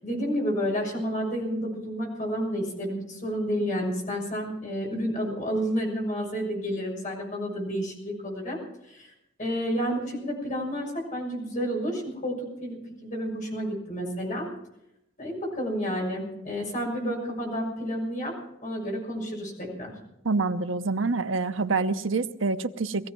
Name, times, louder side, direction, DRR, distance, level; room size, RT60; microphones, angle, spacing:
voice 1, 0.0-9.1 9.4-14.5 15.2-18.4 18.6-19.9, equal, 40° left, -1 dB, 6.6 m, -30 dB
voice 2, 20.2-23.1, right 3 dB, 80° right, 10 dB, 0.8 m, -26 dB
20.5 x 15.0 x 4.6 m, 0.84 s
head